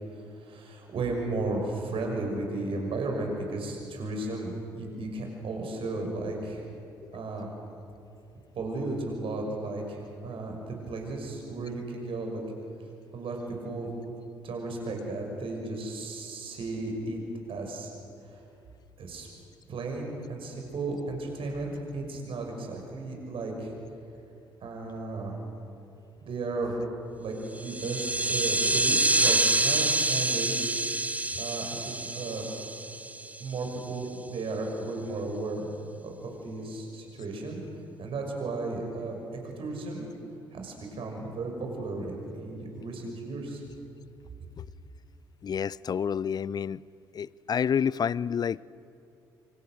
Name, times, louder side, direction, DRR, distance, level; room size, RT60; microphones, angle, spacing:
voice 1, 0.4-6.6 7.1-7.5 8.5-12.4 13.1-13.9 14.4-17.2 17.5-17.9 19.0-19.3 19.7-23.7 24.6-25.4 26.2-26.8 27.2-30.7 31.4-32.5 33.4-35.7 36.0-37.6 38.0-40.1 40.5-43.6, right 2 dB, 50° right, 2 dB, 6.2 m, -34 dB
sound 1, 27.6-33.6, right 2 dB, 10° right, 1.1 m, -27 dB
voice 2, 45.4-46.8 47.1-48.6, left 7 dB, 35° left, 23 dB, 0.5 m, -29 dB
27.5 x 26.0 x 6.6 m, 2.7 s
figure-of-eight pair, 45°, 12 cm